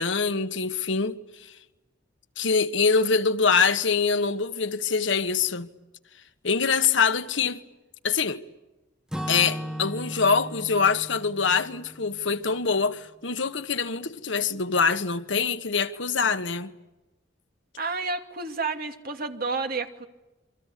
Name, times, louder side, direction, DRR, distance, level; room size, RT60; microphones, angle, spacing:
voice 1, 0.0-1.5 2.4-5.7 6.4-7.6 8.0-8.4 9.3-16.7, left 5 dB, 70° left, 1.5 m, -24 dB
Acoustic guitar / Strum, 9.1-13.1, equal, 5° right, 1.5 m, -37 dB
voice 2, 17.8-20.1, right 3 dB, 50° right, 2.6 m, -30 dB
27.5 x 25.5 x 8.4 m
head